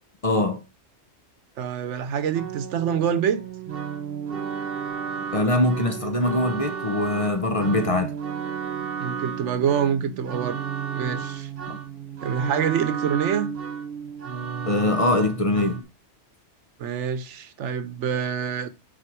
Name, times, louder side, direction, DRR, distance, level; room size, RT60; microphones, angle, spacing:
voice 1, 0.2-0.6 5.3-8.1 11.7-11.8 14.7-15.8, left 2 dB, 35° left, 0.8 m, -23 dB
voice 2, 1.6-3.4 9.0-10.6 10.9-11.5 12.2-13.6 16.8-18.7, right 8 dB, 85° right, 1.1 m, -26 dB
sound 1, 2.3-15.8, right 7 dB, 60° right, 1.0 m, -33 dB
6.4 x 4.2 x 4.6 m
omnidirectional pair, 1.2 m